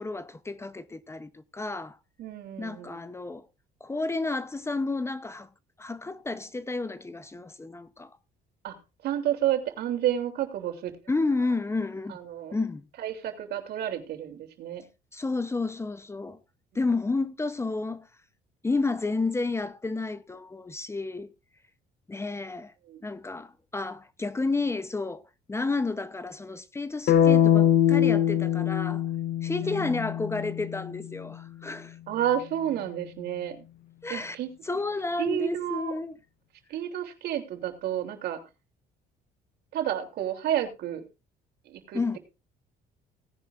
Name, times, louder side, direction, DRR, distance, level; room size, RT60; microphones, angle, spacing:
voice 1, 0.0-2.0 2.6-3.4 3.8-5.5 5.8-8.2 11.1-12.2 12.5-12.8 15.1-16.4 16.7-18.1 18.6-21.3 22.1-22.7 23.0-25.2 25.5-29.1 29.4-32.0 34.0-34.4 34.6-36.1 41.9-42.2, left 3 dB, 15° left, 0.8 m, -31 dB
voice 2, 2.2-3.0 8.6-8.7 9.0-10.9 12.1-12.6 13.0-14.8 22.9-23.0 29.6-30.0 32.1-33.6 34.1-34.5 35.2-35.9 36.7-38.4 39.7-41.0 41.6-42.0, right 11 dB, 70° right, 3.0 m, -30 dB
sound 1, 27.1-31.1, left 10 dB, 65° left, 1.0 m, -23 dB
18.0 x 10.5 x 2.5 m
cardioid pair, 110°, 17 cm